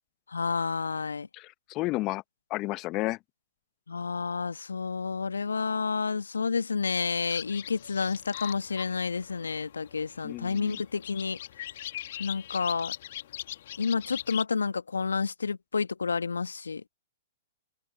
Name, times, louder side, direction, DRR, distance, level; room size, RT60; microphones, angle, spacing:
voice 1, 0.3-1.3 3.9-11.4 12.2-12.9 13.8-16.9, left 5 dB, 75° left, 1.6 m, -30 dB
voice 2, 1.3-2.2 2.5-3.2 10.2-10.8, left 20 dB, 30° left, 1.0 m, -32 dB
sound 1, 7.3-14.4, left 13 dB, 55° left, 1.9 m, -41 dB
open air
figure-of-eight pair, 115°, 0 cm